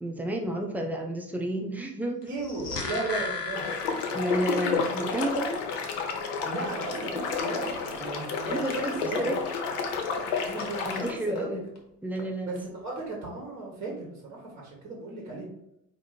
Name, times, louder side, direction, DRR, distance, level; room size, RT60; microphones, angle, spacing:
voice 1, 0.0-2.3 4.1-5.6 8.4-9.4 10.8-11.6 12.0-12.6, right 1 dB, 5° right, 2 dB, 0.4 m, -31 dB
sound 1, 2.3-4.7 5.0-5.1, left 3 dB, 90° left, 0.6 m, -35 dB
sound 2, 2.3-12.6 12.9-13.2, left 2 dB, 35° left, 1.3 m, -47 dB
voice 2, 2.3-3.7 6.4-9.3 10.4-11.6 12.4-15.4, right 3 dB, 25° right, -3 dB, 1.5 m, -36 dB
sound 3, 3.5-11.1, left 5 dB, 50° left, 0.8 m, -31 dB
4.7 x 2.6 x 4.2 m, 0.81 s
figure-of-eight pair, 70°, 47 cm